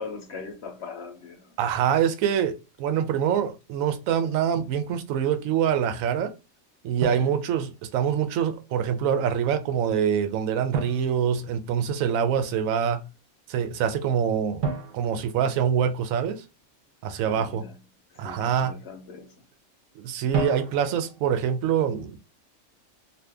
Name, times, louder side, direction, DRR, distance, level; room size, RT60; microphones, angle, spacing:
voice 1, 0.0-1.5 7.2-7.3 17.1-17.8 18.1-19.4, left 4 dB, 60° left, 0.8 m, -40 dB
voice 2, 1.6-6.3 6.8-13.0 13.5-14.6 14.9-16.4 17.0-17.7 18.2-18.8 20.0-22.2, right 8 dB, 80° right, 1.0 m, -25 dB
Drum, 4.6-4.8 7.0-8.2 10.7-12.1 14.6-16.3 20.3-21.3, right 5 dB, 50° right, 0.9 m, -33 dB
2.6 x 2.4 x 3.3 m
omnidirectional pair, 1.4 m